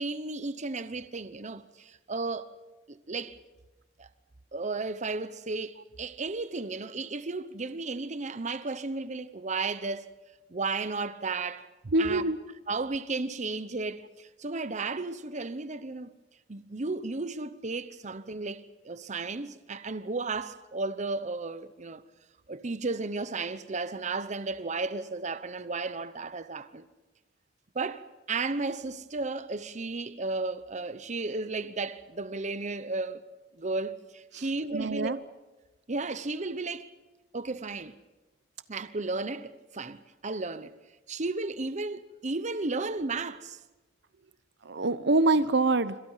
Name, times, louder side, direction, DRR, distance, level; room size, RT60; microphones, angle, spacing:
voice 1, 0.0-2.5 2.9-3.4 4.0-4.1 4.5-10.1 10.5-11.7 12.0-12.2 12.7-16.1 16.5-22.0 22.5-26.8 27.7-33.2 33.6-35.2 35.9-36.9 37.3-38.0 38.7-40.8 41.1-43.6, right 3 dB, 40° right, 0.9 m, -34 dB
voice 2, 11.9-12.4 34.3-35.2 44.6-46.0, right 2 dB, 65° right, 0.8 m, -25 dB
27.5 x 25.5 x 5.7 m
head